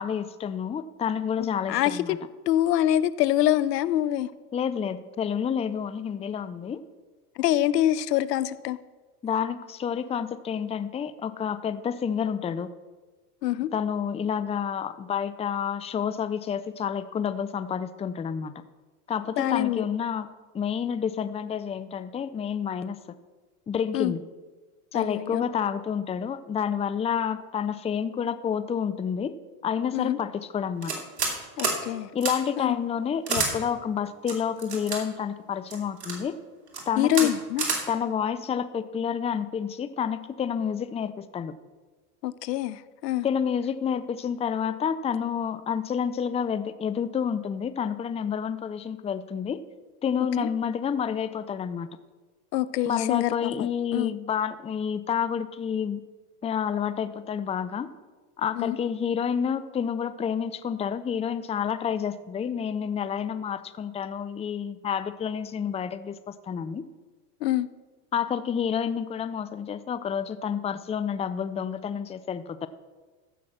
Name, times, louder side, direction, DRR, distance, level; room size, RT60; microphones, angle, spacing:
voice 1, 0.0-2.2 4.5-6.8 9.2-12.7 13.7-18.5 19.1-20.3 20.5-23.0 23.7-24.2 24.9-29.3 29.6-30.9 32.1-36.4 36.9-37.4 37.9-41.5 43.2-49.6 50.0-51.9 52.8-56.0 56.4-57.9 58.4-66.8 68.1-72.7, left 7 dB, 15° left, 0.5 m, -29 dB
voice 2, 1.7-2.2 2.5-4.3 7.4-8.8 13.4-13.7 19.4-19.8 23.9-24.1 24.9-25.4 29.9-30.2 31.6-32.1 32.6-32.8 37.0-37.7 42.2-43.3 50.4-50.5 52.5-54.2 58.6-58.8 67.4-67.7, left 13 dB, 85° left, 0.7 m, -25 dB
sound 1, 30.8-31.3 31.6-31.8 32.2-32.3 33.3-33.5 34.3-35.0 35.7-36.2 36.7-36.8 37.1-37.3 37.6-37.8, right 4 dB, 90° right, 2.7 m, -28 dB
14.5 x 5.9 x 6.3 m
hypercardioid pair, 90°, 47 cm